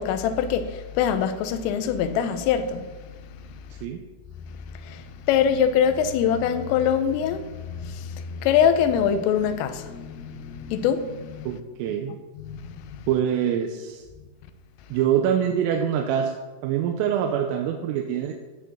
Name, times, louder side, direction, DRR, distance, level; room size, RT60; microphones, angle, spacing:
voice 1, 0.0-3.1 4.7-11.5 12.4-13.0, left 8 dB, 85° left, 3.4 m, -24 dB
voice 2, 11.5-12.2 13.1-14.0 14.9-16.3 16.6-18.3, right 9 dB, 85° right, 3.5 m, -24 dB
14.0 x 7.6 x 7.2 m
omnidirectional pair, 5.9 m